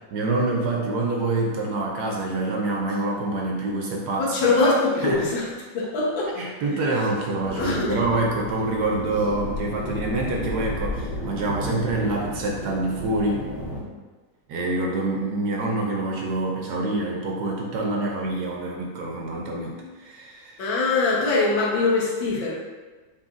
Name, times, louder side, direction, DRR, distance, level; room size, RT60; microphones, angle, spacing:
voice 1, 0.1-4.5 5.0-5.2 6.4-13.5 14.5-20.7, right 2 dB, 70° right, -1 dB, 1.1 m, -26 dB
voice 2, 4.2-5.5 5.7-6.3 7.5-7.9 20.6-22.5, left 3 dB, 80° left, -4 dB, 1.8 m, -22 dB
sound 1, 7.4-13.8, left 1 dB, 45° left, 1.4 m, -32 dB
6.7 x 3.0 x 2.5 m, 1.3 s
omnidirectional pair, 2.1 m